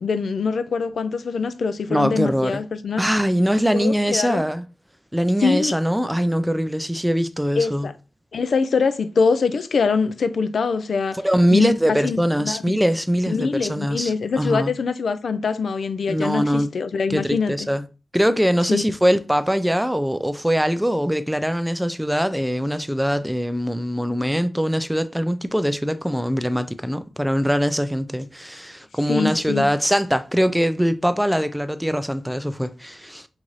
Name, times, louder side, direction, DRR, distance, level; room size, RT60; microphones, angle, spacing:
voice 1, 0.0-3.0 3.7-4.4 5.4-5.7 7.6-7.9 8.3-11.2 11.5-12.8 13.3-17.7 18.7-18.8 29.1-29.7, left 5 dB, 80° left, 0.3 m, -23 dB
voice 2, 1.9-2.6 3.0-4.6 5.1-7.9 11.2-14.7 16.1-16.7 17.1-17.8 18.1-33.3, equal, 5° right, 0.3 m, -22 dB
5.3 x 2.5 x 3.1 m
wide cardioid pair, 90°, 0 cm